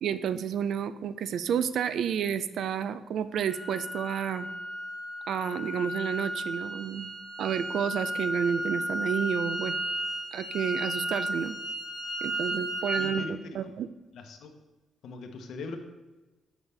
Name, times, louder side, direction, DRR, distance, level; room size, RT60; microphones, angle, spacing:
voice 1, 0.0-4.5 5.3-7.1 7.4-9.8 10.3-11.6 12.2-13.2 13.6-13.9, right 8 dB, 70° right, 13 dB, 0.3 m, -30 dB
sound 1, 3.5-13.2, equal, 10° right, 1.4 m, -34 dB
voice 2, 13.0-13.6 14.1-14.5 15.0-15.8, left 3 dB, 70° left, 5 dB, 0.8 m, -40 dB
6.9 x 5.6 x 3.3 m, 1.1 s
cardioid pair, 90°, 0 cm